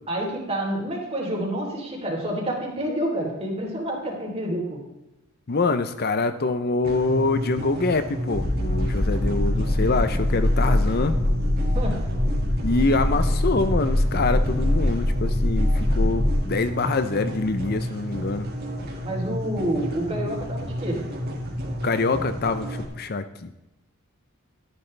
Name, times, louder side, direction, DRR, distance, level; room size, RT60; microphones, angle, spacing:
voice 1, 0.1-4.8 11.7-12.0 19.0-21.0, right 1 dB, 30° right, -1 dB, 3.4 m, -28 dB
voice 2, 5.5-11.1 12.6-18.5 21.8-23.5, left 3 dB, 45° left, 11 dB, 0.6 m, -25 dB
sound 1, 6.8-22.8, equal, 45° right, 2.4 m, -32 dB
sound 2, 8.3-16.3, left 1 dB, 20° left, 3.7 m, -23 dB
13.0 x 11.0 x 3.3 m, 0.98 s
head